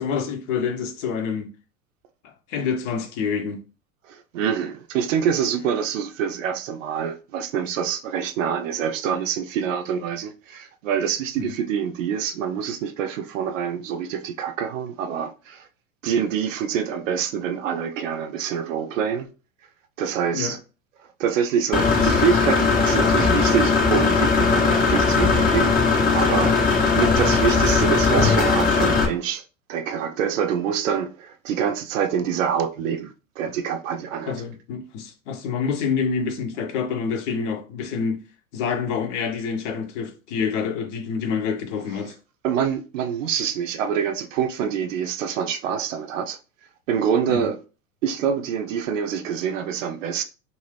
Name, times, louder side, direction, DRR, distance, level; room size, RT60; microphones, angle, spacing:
voice 1, 0.0-1.5 2.2-3.6 11.4-11.5 20.3-20.6 34.3-38.2 38.5-42.1 47.3-47.5, left 6 dB, 60° left, 0.8 m, -27 dB
voice 2, 4.1-15.7 16.0-19.3 20.0-20.6 21.0-25.8 26.1-26.6 27.0-29.4 29.7-34.4 42.4-46.4 46.9-47.6 48.0-50.2, right 8 dB, 65° right, 0.6 m, -26 dB
Engine / Mechanisms, 21.7-29.1, left 4 dB, 20° left, 0.7 m, -19 dB
2.6 x 2.4 x 3.2 m
hypercardioid pair, 95°, 41 cm